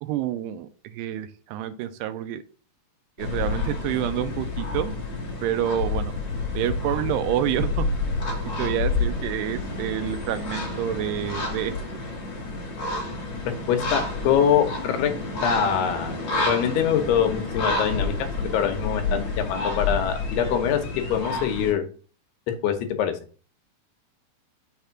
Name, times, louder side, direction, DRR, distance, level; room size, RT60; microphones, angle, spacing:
voice 1, 0.0-2.4 3.2-5.0 5.4-6.1 6.5-7.9 8.4-11.7, right 11 dB, 90° right, 11 dB, 2.7 m, -28 dB
sound 1, 3.2-21.7, left 3 dB, 45° left, 2.8 m, -29 dB
voice 2, 13.5-15.1 15.4-20.8 21.1-21.8 22.5-23.2, left 8 dB, 75° left, 6 dB, 2.8 m, -24 dB
6.5 x 3.5 x 5.8 m, 0.39 s
omnidirectional pair, 4.8 m